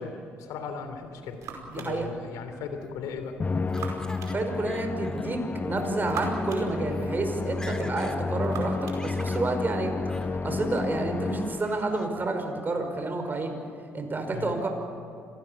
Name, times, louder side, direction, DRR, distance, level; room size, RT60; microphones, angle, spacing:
voice 1, 0.0-1.4 1.8-3.4 14.3-14.6, left 5 dB, 75° left, 7 dB, 3.2 m, -37 dB
sound 1, 0.8-10.9, right 4 dB, 70° right, 5.3 m, -45 dB
voice 2, 1.7-2.1 4.3-9.9 10.4-13.6 13.9-14.7, right 2 dB, 35° right, 5 dB, 5.2 m, -30 dB
Laughter, 2.8-4.4 4.7-5.3 5.7-5.9 6.5-6.6 6.9-7.1 7.4-8.2 8.5-9.5 10.1-10.3 10.7-11.2 11.6-12.1, left 1 dB, 10° left, 2.9 m, -46 dB
Musical instrument, 3.4-11.9, left 3 dB, 30° left, 1.0 m, -31 dB
26.5 x 19.0 x 7.1 m, 2.6 s
hypercardioid pair, 50°, 6 cm